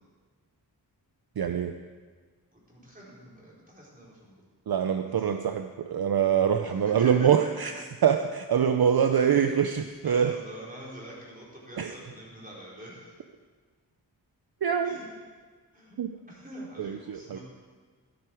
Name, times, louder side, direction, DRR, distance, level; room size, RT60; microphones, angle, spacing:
voice 1, 1.4-1.7 4.7-7.7 8.0-10.3 11.8-11.9 14.6-15.0 16.0-16.1 16.8-17.4, right 8 dB, 60° right, 7 dB, 0.6 m, -24 dB
voice 2, 2.5-4.4 5.0-5.3 6.6-7.5 9.1-9.3 9.7-13.1 14.8-15.1 15.7-16.0 16.3-17.4, equal, 20° right, -6 dB, 4.4 m, -45 dB
13.0 x 12.0 x 4.6 m, 1.5 s
wide cardioid pair, 85°, 41 cm